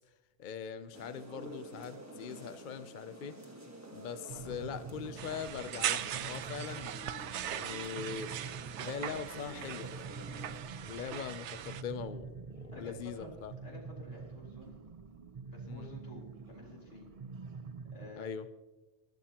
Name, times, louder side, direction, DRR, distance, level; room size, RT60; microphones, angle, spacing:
voice 1, 0.4-3.4 3.9-7.0 7.4-8.3 8.8-13.5 15.7-15.9 18.2-18.5, left 7 dB, 50° left, 12 dB, 0.7 m, -42 dB
sound 1, 0.9-10.6, right 1 dB, 15° right, 1.3 m, -50 dB
sound 2, 4.3-18.1, right 5 dB, 40° right, 0.6 m, -47 dB
sound 3, 5.2-11.8, right 11 dB, 80° right, 0.9 m, -39 dB
voice 2, 12.7-13.3 13.6-14.8 15.5-17.1 17.9-18.3, left 1 dB, 75° left, -1 dB, 4.2 m, -50 dB
23.0 x 11.5 x 2.9 m, 1.1 s
omnidirectional pair, 1.2 m